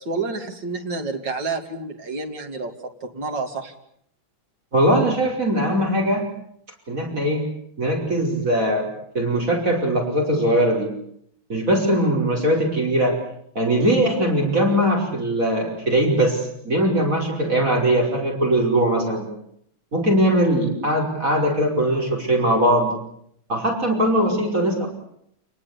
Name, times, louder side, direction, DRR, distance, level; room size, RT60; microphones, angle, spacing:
voice 1, 0.0-2.7 3.0-3.7, right 3 dB, 65° right, 4 dB, 3.2 m, -29 dB
voice 2, 4.7-6.3 6.9-7.5 7.8-8.9 9.1-10.9 11.5-13.2 13.6-19.3 19.9-22.9 23.5-24.9, right 1 dB, 40° right, 0 dB, 5.8 m, -20 dB
28.0 x 20.5 x 8.4 m, 0.71 s
omnidirectional pair, 2.1 m